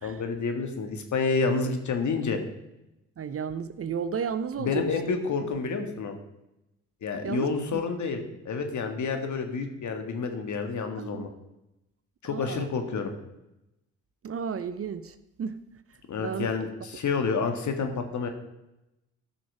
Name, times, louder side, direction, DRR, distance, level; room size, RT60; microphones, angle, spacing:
voice 1, 0.0-2.4 4.6-6.1 7.0-8.2 8.5-11.3 12.2-13.1 16.1-18.3, left 4 dB, 55° left, 1.8 m, -29 dB
voice 2, 3.2-5.2 7.2-7.8 11.0-11.3 12.3-12.7 14.2-15.6 16.2-16.5, right 6 dB, 40° right, 0.8 m, -33 dB
13.5 x 6.2 x 5.1 m
hypercardioid pair, 50°, 36 cm